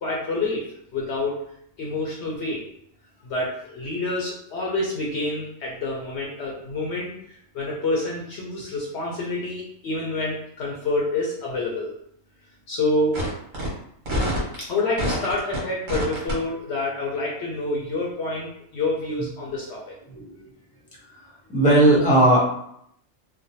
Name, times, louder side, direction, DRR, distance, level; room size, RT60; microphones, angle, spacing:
voice 1, 0.0-0.6 0.9-1.3 1.8-2.6 3.2-7.1 7.5-11.9 12.7-13.2 14.6-20.0, left 2 dB, 65° left, -3 dB, 0.8 m, -27 dB
sound 1, 13.1-13.3 13.5-13.7 14.1-14.6 15.0-15.6 15.9-16.3, equal, 80° right, 1.5 m, -25 dB
voice 2, 20.1-20.5 21.5-22.4, right 1 dB, 5° left, -5 dB, 0.8 m, -17 dB
3.0 x 2.2 x 2.7 m, 0.72 s
omnidirectional pair, 1.3 m